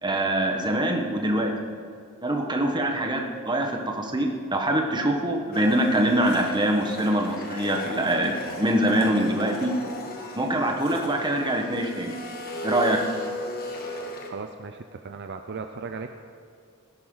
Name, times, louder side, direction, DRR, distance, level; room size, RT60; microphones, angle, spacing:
voice 1, 0.0-1.5 2.2-9.7 10.3-12.1 12.6-13.0, right 1 dB, 20° right, 2 dB, 1.4 m, -24 dB
Domestic sounds home sounds, 5.5-14.3, left 2 dB, 45° left, 1.5 m, -36 dB
voice 2, 14.3-16.1, right 4 dB, 50° right, 6 dB, 0.5 m, -36 dB
19.0 x 10.5 x 4.0 m, 2.3 s
head